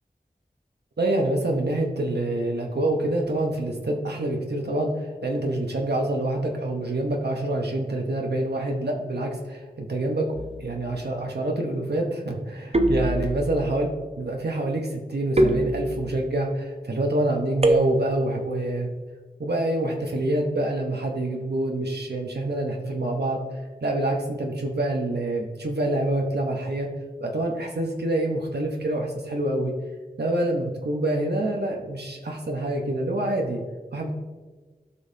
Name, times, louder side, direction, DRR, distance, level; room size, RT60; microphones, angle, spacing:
voice 1, 1.0-10.3 10.6-13.9 14.2-18.9 19.4-23.4 23.8-26.9 27.2-29.7 30.2-33.6 33.9-34.1, right 1 dB, 90° right, 1 dB, 0.9 m, -26 dB
sound 1, 10.4-10.9 12.7-13.7 15.4-16.3 17.6-18.4, right 1 dB, 40° right, 0.7 m, -24 dB
12.5 x 5.3 x 2.7 m, 1.4 s
wide cardioid pair, 50°, 16 cm